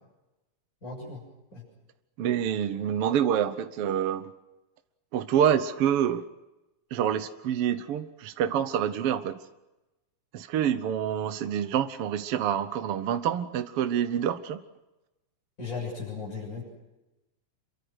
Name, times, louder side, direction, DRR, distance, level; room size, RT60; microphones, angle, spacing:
voice 1, 0.8-1.2 1.5-1.6 15.6-16.6, left 4 dB, 25° left, -3 dB, 7.6 m, -36 dB
voice 2, 2.2-4.3 5.1-6.2 6.9-9.4 10.3-14.6, right 9 dB, 65° right, 10 dB, 1.5 m, -27 dB
28.0 x 23.5 x 6.3 m, 1.0 s
omnidirectional pair, 3.6 m